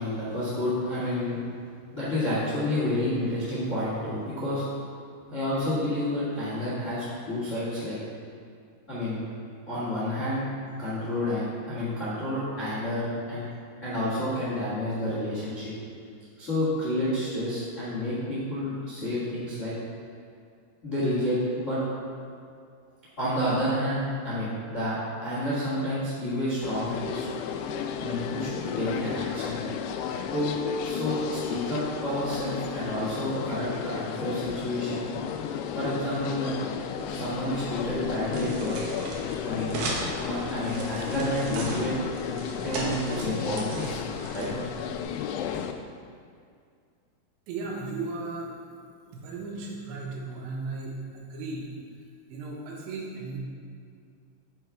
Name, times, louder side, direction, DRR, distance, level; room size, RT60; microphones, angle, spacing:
voice 1, 0.0-1.4 1.9-4.6 5.3-8.0 8.9-9.2 9.7-10.5 10.8-13.5 13.8-15.7 16.4-19.7 20.8-21.8 23.2-24.9 25.2-27.3 28.0-29.6 30.3-30.6 30.8-35.1 35.7-36.5 37.0-38.7 39.4-39.7 40.2-41.9 42.6-44.0 44.3-44.5, left 1 dB, 50° left, -9 dB, 0.9 m, -29 dB
sound 1, 26.6-45.7, left 8 dB, 85° left, 2.4 m, -33 dB
sound 2, 37.0-45.0, right 2 dB, 70° right, 2.0 m, -38 dB
voice 2, 47.5-48.5 49.1-51.7 52.3-53.4, right 3 dB, 85° right, -2 dB, 3.5 m, -36 dB
7.8 x 6.5 x 4.8 m, 2.3 s
omnidirectional pair, 5.1 m